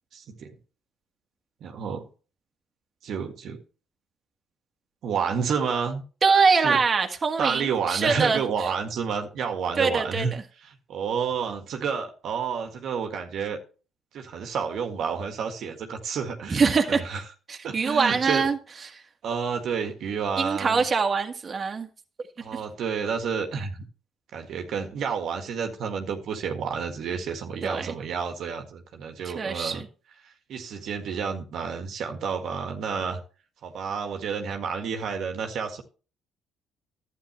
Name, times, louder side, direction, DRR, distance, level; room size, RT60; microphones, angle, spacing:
voice 1, 0.1-0.5 1.6-2.0 3.0-3.6 5.0-6.0 6.6-6.8 7.4-10.3 10.6-13.6 14.1-17.2 17.6-18.5 19.2-20.9 22.4-23.8 24.3-29.9 30.2-33.2 33.6-35.8, right 6 dB, 65° right, 1.7 m, -30 dB
voice 2, 6.2-8.4 9.8-10.3 16.5-17.0 17.5-18.6 18.9-19.0 20.4-21.9 27.6-27.9 29.3-29.9, right 5 dB, 40° right, 1.7 m, -23 dB
12.0 x 9.2 x 3.3 m
supercardioid pair, 65°, 0 cm